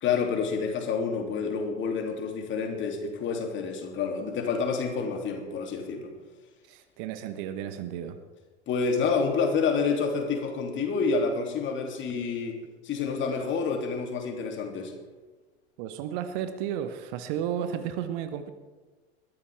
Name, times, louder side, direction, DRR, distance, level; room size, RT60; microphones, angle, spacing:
voice 1, 0.0-6.1 8.7-12.5 12.8-14.9, left 5 dB, 35° left, 2 dB, 3.0 m, -28 dB
voice 2, 6.7-8.2 15.8-18.5, right 9 dB, 50° right, 9 dB, 1.3 m, -33 dB
21.5 x 14.0 x 3.6 m, 1.3 s
figure-of-eight pair, 80°, 33 cm